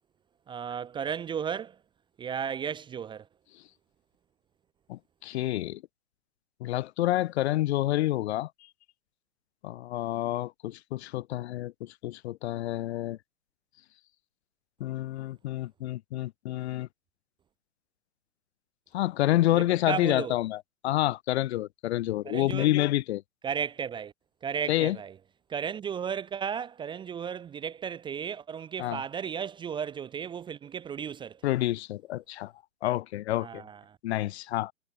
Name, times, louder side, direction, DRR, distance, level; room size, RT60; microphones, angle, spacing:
voice 1, 0.5-1.8 2.2-3.3 19.5-20.3 22.2-22.7 23.4-24.1 24.4-25.2 25.5-31.4 33.4-34.0, right 7 dB, 10° right, 0.7 m, -34 dB
voice 2, 4.9-5.8 6.6-8.5 9.6-13.2 14.8-16.9 18.9-23.2 24.7-25.0 28.8-29.0 31.4-32.5 32.8-33.6 34.0-34.7, left 15 dB, 50° left, 1.1 m, -28 dB
hypercardioid pair, 130°, 42 cm